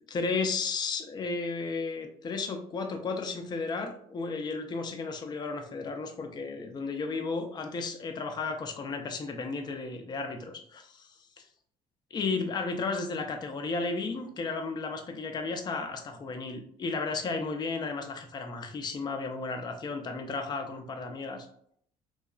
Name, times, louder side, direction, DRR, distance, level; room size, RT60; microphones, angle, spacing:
voice 1, 0.1-11.1 12.1-21.5, left 4 dB, 30° left, 5 dB, 0.4 m, -33 dB
2.8 x 2.2 x 2.3 m, 0.63 s
supercardioid pair, 75°, 15 cm